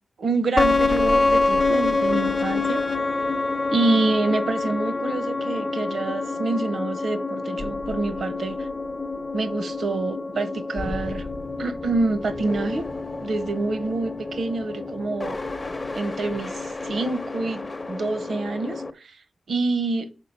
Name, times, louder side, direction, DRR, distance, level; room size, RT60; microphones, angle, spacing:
voice 1, 0.2-3.0 3.7-8.7 9.3-11.3 11.6-12.8 13.1-15.4 15.9-19.2 19.5-20.1, right 3 dB, 70° right, 1.0 m, -27 dB
sound 1, 0.6-18.9, left 3 dB, 25° left, 0.7 m, -27 dB
6.4 x 4.9 x 5.3 m
wide cardioid pair, 150°, 0 cm